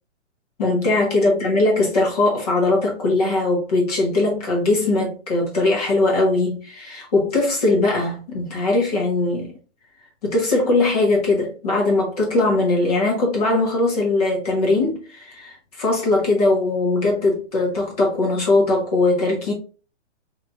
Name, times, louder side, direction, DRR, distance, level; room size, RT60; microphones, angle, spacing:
voice 1, 0.6-9.5 10.2-19.5, left 2 dB, 30° left, 1.3 m, -20 dB
3.3 x 3.0 x 2.5 m
hypercardioid pair, 180°, 36 cm